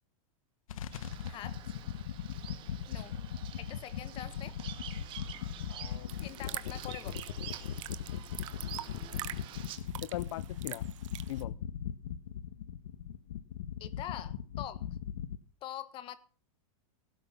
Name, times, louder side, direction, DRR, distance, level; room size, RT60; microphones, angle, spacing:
sound 1, 0.7-15.4, left 9 dB, 80° left, 1.3 m, -39 dB
Bird vocalization bird call bird song, 0.9-9.8, right 11 dB, 30° right, 1.8 m, -49 dB
voice 1, 1.3-1.6 2.9-3.1 3.6-4.6 6.2-7.2 13.8-14.8 15.6-16.2, left 12 dB, 30° left, 14 dB, 1.4 m, -44 dB
voice 2, 5.7-6.3 9.1-9.5 10.0-10.8 11.3-11.6, left 16 dB, 60° left, 18 dB, 0.6 m, -41 dB
sound 2, 6.1-11.4, right 15 dB, 65° right, 1.3 m, -45 dB
17.5 x 6.4 x 7.2 m, 0.40 s
supercardioid pair, 150°, 18 cm